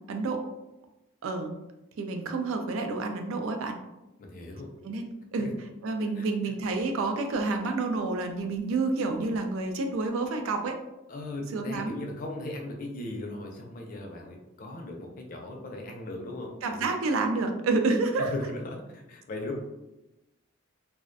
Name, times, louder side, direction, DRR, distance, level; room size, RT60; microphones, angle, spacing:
voice 1, 0.1-0.4 1.2-1.5 2.0-3.8 4.8-5.5 5.8-10.8 11.5-12.0 16.6-18.3, right 3 dB, 85° right, 5 dB, 0.4 m, -29 dB
voice 2, 4.2-4.7 5.4-5.5 6.0-6.3 11.1-16.9 18.2-19.6, left 2 dB, 45° left, 2 dB, 0.4 m, -38 dB
2.3 x 2.1 x 2.5 m, 0.96 s
head